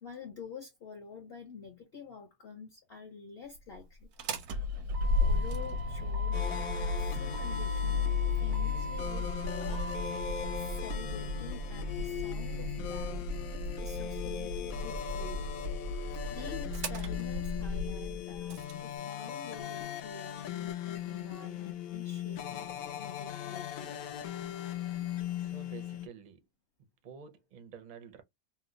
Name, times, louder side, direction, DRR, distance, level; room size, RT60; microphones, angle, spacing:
voice 1, 0.0-4.1 5.2-6.4 6.7-8.1 8.4-10.0 10.5-13.3 13.8-15.4 16.3-22.7 23.0-24.0, left 5 dB, 50° left, 0.9 m, -48 dB
Motor vehicle (road), 4.0-18.7, left 2 dB, 90° right, 1.2 m, -34 dB
sound 1, 6.3-26.1, left 10 dB, 75° left, 1.0 m, -39 dB
voice 2, 25.4-26.5 27.0-28.2, right 6 dB, 50° right, 0.5 m, -50 dB
2.9 x 2.1 x 3.8 m
omnidirectional pair, 1.6 m